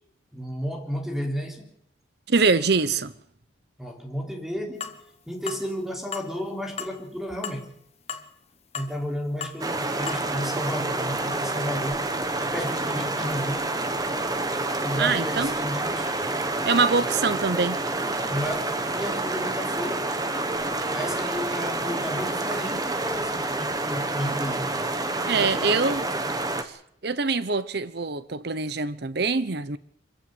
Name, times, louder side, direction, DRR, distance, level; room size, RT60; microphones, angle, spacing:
voice 1, 0.3-1.7 3.8-5.0 5.3-7.7 8.7-13.7 14.8-16.1 18.3-20.1 20.9-24.8 25.3-26.0, equal, ahead, 3.5 m, -33 dB
voice 2, 2.3-3.1 15.0-15.5 16.6-17.8 25.3-26.0 26.6-26.7 27.0-29.8, right 4 dB, 55° right, 0.9 m, -24 dB
sound 1, 4.8-5.0 5.5-5.6 6.1-6.3 6.8-7.0 7.4-7.6 8.1-8.3 8.7-8.9 9.4-9.6 10.1-10.2, left 6 dB, 35° left, 1.4 m, -34 dB
sound 2, 9.6-26.6, right 2 dB, 20° right, 1.4 m, -28 dB
25.0 x 15.5 x 8.0 m
head